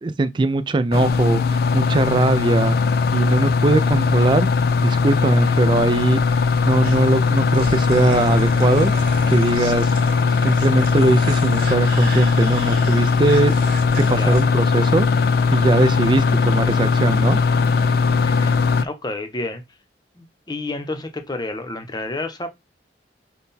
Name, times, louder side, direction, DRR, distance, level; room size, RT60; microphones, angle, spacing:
voice 1, 0.0-2.8 3.1-4.5 4.8-6.2 6.6-8.9 9.3-9.9 10.4-13.5 14.1-15.1 15.5-17.4, right 3 dB, 25° right, 0.3 m, -20 dB
sound 1, 0.9-18.8, left 4 dB, 60° left, 0.4 m, -19 dB
sound 2, 6.8-14.4, right 2 dB, 55° right, 1.7 m, -35 dB
voice 2, 18.2-19.6 20.2-22.5, left 2 dB, 25° left, 0.7 m, -30 dB
5.7 x 2.2 x 4.0 m
head